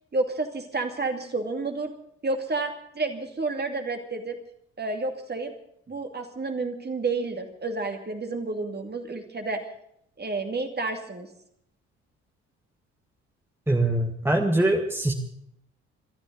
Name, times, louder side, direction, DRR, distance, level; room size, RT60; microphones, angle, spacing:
voice 1, 0.1-1.9 2.2-4.3 4.8-5.5 5.9-9.6 10.2-11.3, right 3 dB, 25° right, 5 dB, 2.6 m, -30 dB
voice 2, 13.7-15.1, right 1 dB, 5° right, 3 dB, 1.9 m, -23 dB
26.5 x 13.5 x 4.1 m, 0.72 s
figure-of-eight pair, 45°, 38 cm